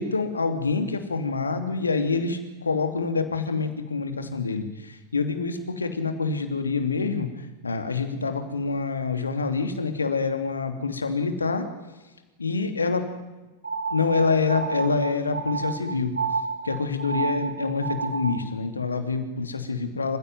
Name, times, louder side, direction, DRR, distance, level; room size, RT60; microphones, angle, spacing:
voice 1, 0.0-7.3 7.6-11.7 12.4-13.1 13.9-16.1 16.6-20.2, left 4 dB, 75° left, 7 dB, 2.9 m, -26 dB
sound 1, 13.6-18.5, right 5 dB, 75° right, 3.0 m, -31 dB
27.5 x 16.0 x 9.4 m, 1.1 s
figure-of-eight pair, 90°, 0 cm